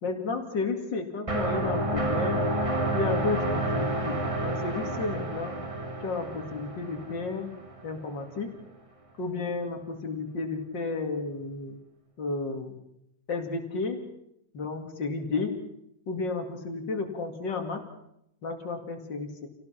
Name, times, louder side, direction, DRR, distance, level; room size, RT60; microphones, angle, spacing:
voice 1, 0.0-2.5 2.9-5.6 6.0-7.5 7.8-8.5 9.2-11.8 12.2-12.8 13.3-14.0 14.5-15.6 16.1-17.8 18.4-19.5, left 4 dB, 80° left, 4 dB, 3.1 m, -32 dB
sound 1, 1.3-8.0, right 1 dB, 20° right, 1.7 m, -30 dB
28.0 x 18.0 x 5.9 m, 0.78 s
omnidirectional pair, 1.9 m